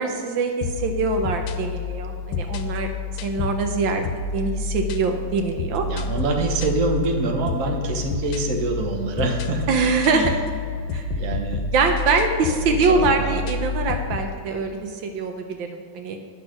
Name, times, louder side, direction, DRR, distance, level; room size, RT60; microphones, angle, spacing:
voice 1, 0.0-2.9 3.2-4.0 4.3-5.9 7.6-7.9 9.7-10.4 10.9-11.0 11.7-16.2, right 4 dB, 75° right, 5 dB, 1.5 m, -23 dB
sound 1, 0.6-14.3, left 4 dB, 80° left, 1.4 m, -29 dB
voice 2, 5.8-9.7 10.1-10.3 11.2-11.6 12.5-12.6 12.9-13.4, right 3 dB, 50° right, 3 dB, 1.3 m, -25 dB
10.0 x 6.3 x 6.3 m, 2.3 s
omnidirectional pair, 2.1 m